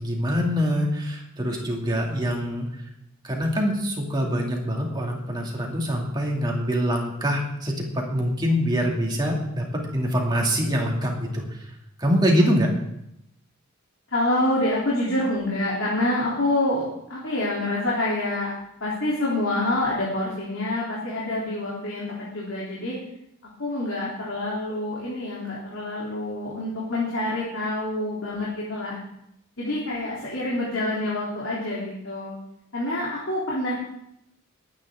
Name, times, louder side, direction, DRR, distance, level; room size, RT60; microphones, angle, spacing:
voice 1, 0.0-2.7 3.2-12.7, equal, 20° right, -1 dB, 2.6 m, -24 dB
voice 2, 14.1-18.5 18.8-23.0 23.6-29.0 29.6-32.4 32.7-33.7, left 1 dB, 65° left, -6 dB, 3.3 m, -27 dB
21.0 x 9.5 x 3.7 m, 0.79 s
head